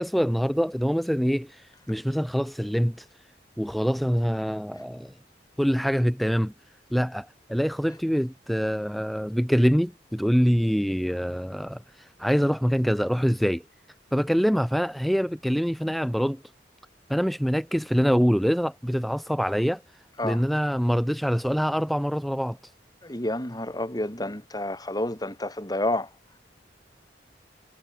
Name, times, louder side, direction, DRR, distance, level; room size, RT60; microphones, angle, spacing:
voice 1, 0.0-3.1 3.6-5.1 5.6-6.5 6.9-13.6 14.1-16.4 17.1-19.8 20.2-22.6, equal, ahead, 2.2 m, -25 dB
voice 2, 23.0-26.1, left 1 dB, 20° left, 3.6 m, -29 dB
head